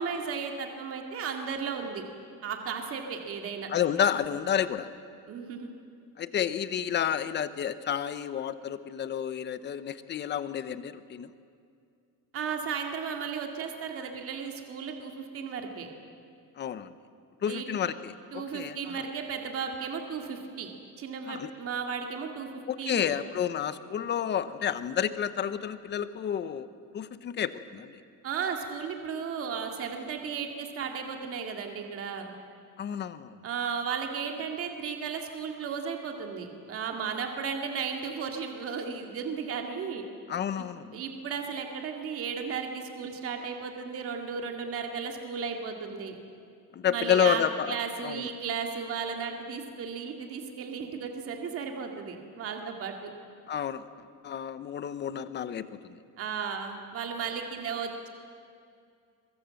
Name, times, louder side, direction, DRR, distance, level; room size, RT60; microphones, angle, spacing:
voice 1, 0.0-2.0 2.4-3.7 5.3-5.7 12.3-15.9 17.5-17.7 18.3-20.7 21.0-22.5 22.8-23.2 28.2-32.3 33.4-40.1 40.6-40.7 40.9-46.2 46.9-53.1 56.2-58.1, right 6 dB, 40° right, 3 dB, 2.2 m, -35 dB
voice 2, 3.7-4.9 6.2-11.3 16.6-16.9 17.4-19.0 21.3-21.5 22.7-26.7 26.9-28.0 32.8-33.4 40.3-41.0 46.7-47.8 48.0-48.3 53.5-53.9 54.2-56.0, left 9 dB, 30° left, 13 dB, 0.8 m, -30 dB
23.0 x 22.5 x 7.7 m, 2.4 s
cardioid pair, 175°, 36 cm